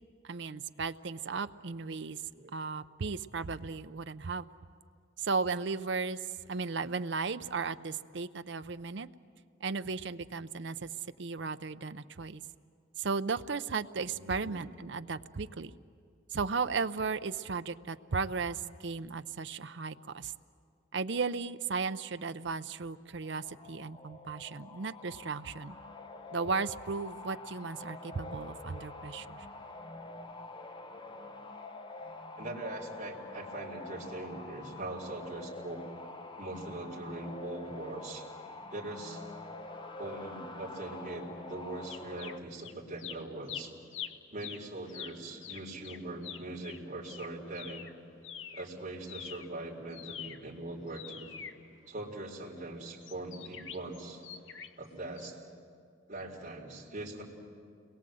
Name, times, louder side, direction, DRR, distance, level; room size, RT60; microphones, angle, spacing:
voice 1, 0.2-2.2 2.5-4.5 5.2-6.2 6.5-9.1 9.6-10.9 11.2-12.4 13.0-15.7 16.3-20.3 20.9-25.7 26.3-29.5, right 4 dB, 60° right, 11 dB, 0.6 m, -35 dB
voice 2, 14.1-14.6 32.3-35.8 36.4-38.2 38.7-39.2 40.0-43.7 44.3-47.9 48.5-51.3 51.9-54.2 54.8-55.4 56.1-57.2, right 2 dB, 40° right, -3 dB, 4.2 m, -41 dB
sound 1, 23.2-42.4, left 2 dB, 25° left, 0.9 m, -46 dB
sound 2, 41.9-42.7 43.0-48.7 49.0-52.3 53.0-54.8 55.2-55.3, left 9 dB, 75° left, 1.1 m, -45 dB
29.5 x 22.0 x 7.8 m, 2.2 s
head